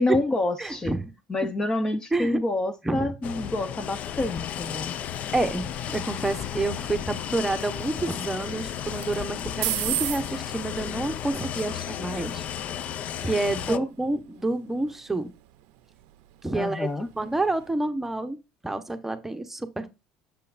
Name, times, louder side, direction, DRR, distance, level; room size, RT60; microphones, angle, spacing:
voice 1, 0.0-0.9 1.3-4.9 13.7-13.9 16.5-17.1, left 2 dB, 25° left, 0.7 m, -27 dB
voice 2, 0.6-1.1 2.1-2.4 2.8-3.1 5.3-12.4 13.2-15.3 16.4-16.9 17.2-18.4 18.6-19.9, right 2 dB, 10° right, 0.9 m, -28 dB
sound 1, 3.2-13.8, left 10 dB, 55° left, 0.4 m, -34 dB
sound 2, 5.8-17.7, right 17 dB, 80° right, 0.5 m, -39 dB
7.1 x 5.6 x 2.5 m
supercardioid pair, 105°, 3 cm